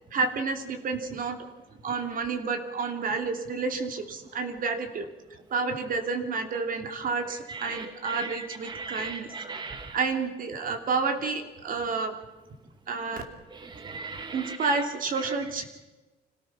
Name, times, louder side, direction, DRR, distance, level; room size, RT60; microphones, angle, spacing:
voice 1, 0.1-1.4 1.8-5.1 5.5-9.3 9.9-12.1 12.9-13.2 14.3-15.7, right 4 dB, 50° right, 6 dB, 3.0 m, -30 dB
voice 2, 7.5-10.0 13.5-14.7, right 4 dB, 25° right, 7 dB, 1.3 m, -38 dB
26.0 x 17.5 x 6.0 m, 1.1 s
cardioid pair, 125°, 18 cm